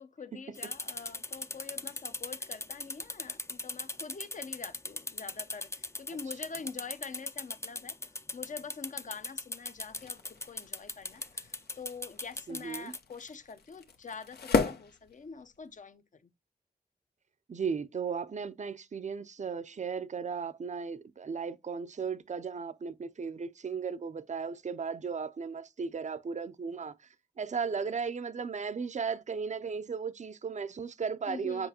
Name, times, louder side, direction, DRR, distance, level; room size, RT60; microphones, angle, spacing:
voice 1, 0.0-8.0 8.3-16.3 31.3-31.7, left 5 dB, 50° left, 0.7 m, -45 dB
sound 1, 0.5-13.0, left 2 dB, 15° left, 0.5 m, -39 dB
sound 2, 9.8-15.8, left 4 dB, 85° left, 0.9 m, -36 dB
voice 2, 12.5-12.9 17.5-27.1 27.4-31.7, right 5 dB, 45° right, 0.5 m, -36 dB
7.9 x 4.9 x 2.8 m
cardioid pair, 60°, 16 cm